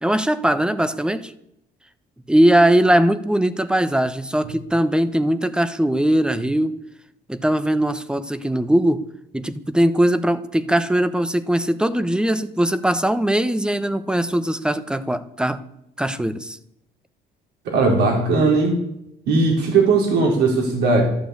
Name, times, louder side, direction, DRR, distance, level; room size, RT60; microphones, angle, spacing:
voice 1, 0.0-1.3 2.3-6.7 7.3-9.0 9.3-15.6 16.0-16.6, right 1 dB, 5° right, 12 dB, 1.0 m, -20 dB
voice 2, 17.6-18.8 19.3-21.0, right 3 dB, 80° right, 0 dB, 4.3 m, -18 dB
12.5 x 12.0 x 8.3 m, 0.81 s
cardioid pair, 110°, 17 cm